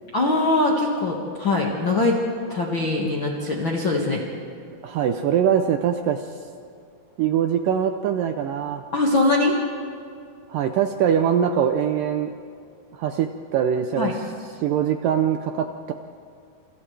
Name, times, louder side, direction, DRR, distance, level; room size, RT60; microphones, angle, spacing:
voice 1, 0.1-2.2 2.5-4.2 8.9-9.6 14.0-14.1, left 2 dB, 45° left, -2 dB, 1.8 m, -22 dB
voice 2, 4.8-6.3 7.2-8.8 10.5-12.3 12.9-14.1 14.6-15.9, right 8 dB, 75° right, 6 dB, 2.0 m, -22 dB
29.5 x 29.0 x 3.4 m, 2.4 s
omnidirectional pair, 4.6 m